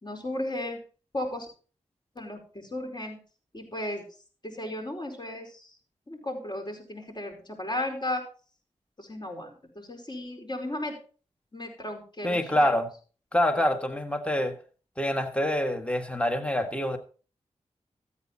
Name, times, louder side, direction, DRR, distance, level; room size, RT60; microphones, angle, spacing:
voice 1, 0.0-0.8 1.1-1.5 2.1-3.2 3.5-4.0 4.4-5.7 6.1-8.2 9.0-11.0 11.5-12.7, left 1 dB, 35° left, 4.8 m, -35 dB
voice 2, 12.2-12.9 13.3-14.6 15.0-17.0, left 1 dB, 10° left, 1.6 m, -26 dB
14.0 x 8.5 x 4.2 m
cardioid pair, 55°, 12 cm